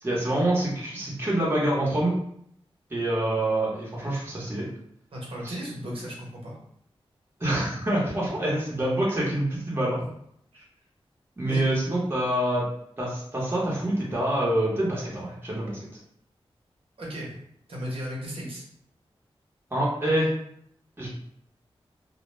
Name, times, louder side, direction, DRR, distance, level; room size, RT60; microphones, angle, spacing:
voice 1, 0.0-2.1 2.9-4.7 5.4-5.5 7.4-10.0 11.4-12.6 13.0-15.8 19.7-20.3 21.0-21.1, right 1 dB, 20° right, -5 dB, 0.8 m, -26 dB
voice 2, 5.1-6.6 10.5-10.6 11.4-11.6 17.0-17.3 17.7-18.6, equal, 65° right, -4 dB, 0.8 m, -35 dB
2.1 x 2.1 x 3.0 m, 0.69 s
wide cardioid pair, 80°, 10 cm